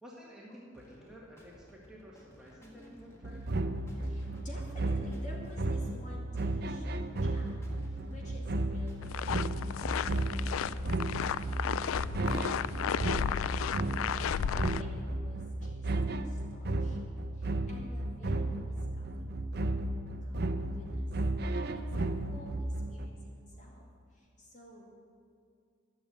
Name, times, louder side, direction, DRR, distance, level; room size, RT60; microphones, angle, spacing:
voice 1, 0.0-3.4, equal, 5° right, -5 dB, 1.6 m, -51 dB
sound 1, 0.7-10.8, equal, 15° left, 1.5 m, -58 dB
sound 2, 3.2-23.1, right 2 dB, 50° right, 0.6 m, -34 dB
voice 2, 4.0-7.6 7.9-11.2 11.5-13.3 13.9-15.9 16.2-21.0 21.5-23.8 24.1-24.9, equal, 35° left, -2 dB, 2.1 m, -53 dB
sound 3, 9.0-14.8, left 8 dB, 90° left, 0.3 m, -33 dB
12.0 x 6.7 x 8.0 m, 2.4 s
head